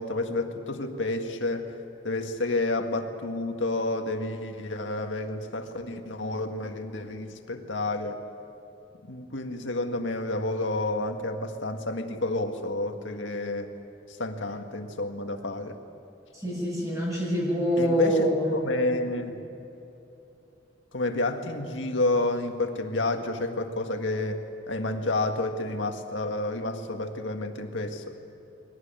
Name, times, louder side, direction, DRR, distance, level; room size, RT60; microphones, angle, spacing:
voice 1, 0.0-1.7 2.0-8.2 9.1-13.7 14.2-15.8 17.8-19.4 20.9-28.2, left 2 dB, 90° left, 5 dB, 1.8 m, -30 dB
voice 2, 16.4-18.5, equal, 15° right, -4 dB, 7.6 m, -25 dB
22.0 x 17.5 x 8.9 m, 2.9 s
head